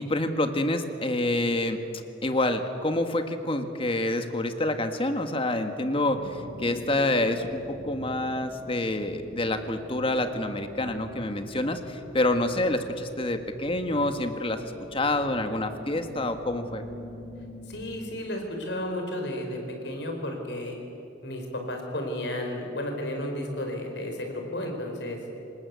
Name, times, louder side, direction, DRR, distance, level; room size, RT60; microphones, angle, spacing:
voice 1, 0.0-1.8 2.2-16.8, left 1 dB, 30° left, 7 dB, 1.6 m, -27 dB
sound 1, 6.0-18.0, left 1 dB, 50° right, 6.6 m, -45 dB
voice 2, 17.7-19.6 19.8-20.8 21.2-25.3, left 1 dB, 75° left, 3 dB, 4.7 m, -33 dB
26.0 x 20.0 x 8.4 m, 2.9 s
head